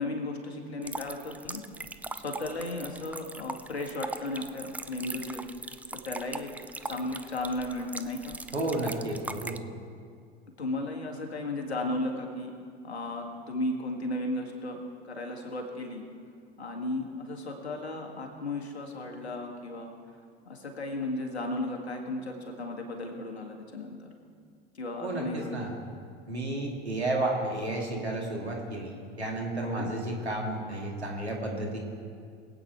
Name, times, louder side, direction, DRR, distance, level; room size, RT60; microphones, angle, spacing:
voice 1, 0.0-1.6 2.2-5.5 5.9-6.5 6.8-8.4 10.6-12.5 12.8-16.0 16.6-19.9 20.5-24.1 24.7-25.6 29.6-29.9, left 2 dB, 85° left, 2 dB, 2.0 m, -35 dB
sound 1, 0.8-9.6, right 2 dB, 5° right, 0.4 m, -40 dB
voice 2, 8.5-9.6 25.0-25.7 26.3-31.8, right 2 dB, 90° right, -1 dB, 2.4 m, -32 dB
22.0 x 8.7 x 4.6 m, 2.2 s
figure-of-eight pair, 80°, 32 cm